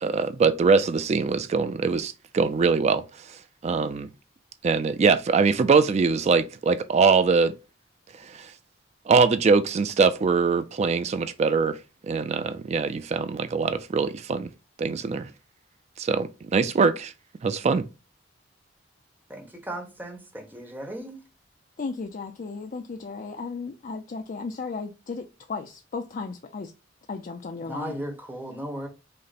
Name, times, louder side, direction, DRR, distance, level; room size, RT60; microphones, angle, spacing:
voice 1, 0.0-4.1 4.6-7.6 8.2-8.5 9.1-11.8 12.1-14.5 14.8-15.3 16.0-17.1 17.4-17.8, right 5 dB, 35° right, 0.3 m, -23 dB
voice 2, 19.3-21.2 27.6-28.9, right 1 dB, 10° right, 1.0 m, -36 dB
voice 3, 21.8-26.7 27.1-28.0, left 4 dB, 45° left, 0.4 m, -35 dB
5.1 x 2.1 x 4.1 m
head